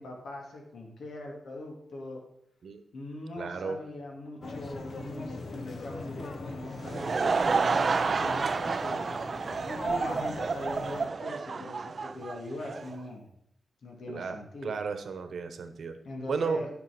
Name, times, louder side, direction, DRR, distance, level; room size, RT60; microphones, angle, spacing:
voice 1, 0.0-2.2 2.9-9.0 9.7-13.3 13.8-14.7 16.0-16.7, left 1 dB, 80° left, 1 dB, 2.6 m, -41 dB
voice 2, 3.4-3.8 14.1-16.0 16.3-16.6, right 5 dB, 65° right, 9 dB, 1.1 m, -33 dB
sound 1, 4.4-11.1, left 3 dB, 45° left, 0.9 m, -40 dB
Laughter / Crowd, 6.6-12.9, right 5 dB, 40° right, 0.4 m, -30 dB
11.0 x 6.1 x 6.0 m, 0.77 s
wide cardioid pair, 160°, 0 cm